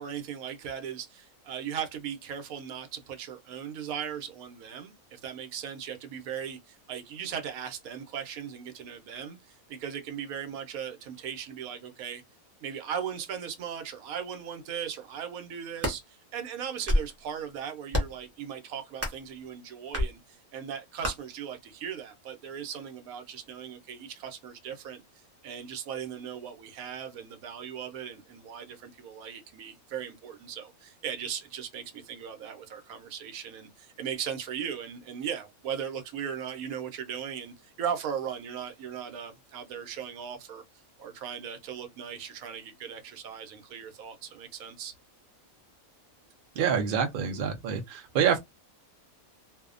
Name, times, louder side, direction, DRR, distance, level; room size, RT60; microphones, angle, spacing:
voice 1, 0.0-12.2 12.6-25.0 25.4-40.6 41.0-44.9, right 8 dB, 80° right, 1.1 m, -38 dB
sound 1, 15.6-16.0 16.6-17.2 17.9-18.2 19.0-19.3 19.9-20.1 21.0-21.1, left 1 dB, 15° right, 0.5 m, -28 dB
voice 2, 46.6-48.4, right 7 dB, 65° right, 0.5 m, -26 dB
2.6 x 2.1 x 2.4 m
omnidirectional pair, 1.5 m